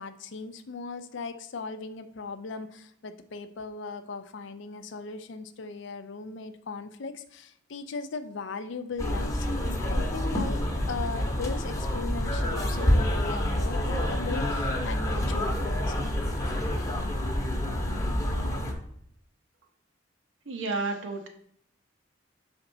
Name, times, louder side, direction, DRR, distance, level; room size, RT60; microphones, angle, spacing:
voice 1, 0.0-16.1, left 4 dB, 70° left, 10 dB, 0.5 m, -38 dB
sound 1, 9.0-18.7, left 1 dB, 15° left, 0.9 m, -28 dB
voice 2, 20.5-21.3, right 3 dB, 75° right, 4 dB, 1.0 m, -31 dB
6.0 x 4.3 x 3.8 m, 0.70 s
head